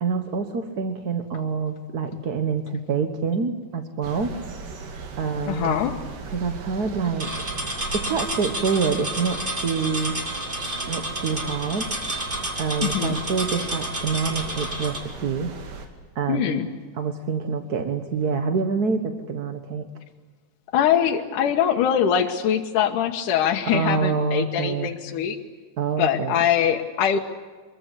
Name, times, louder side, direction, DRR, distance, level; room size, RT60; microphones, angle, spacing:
voice 1, 0.0-4.3 5.2-5.8 6.3-7.3 7.9-10.2 10.9-11.9 12.6-15.5 16.1-16.6 16.9-19.9 23.6-24.9 25.8-26.4, right 5 dB, 60° right, 7 dB, 1.0 m, -26 dB
sound 1, 4.0-15.9, right 4 dB, 90° right, 4.1 m, -38 dB
voice 2, 5.5-5.9 12.8-13.2 16.3-16.7 20.7-25.4 26.0-27.2, left 9 dB, 75° left, 3 dB, 2.8 m, -22 dB
sound 2, 7.2-15.0, right 1 dB, 15° right, 2.7 m, -30 dB
25.0 x 22.0 x 8.2 m, 1.4 s
omnidirectional pair, 3.7 m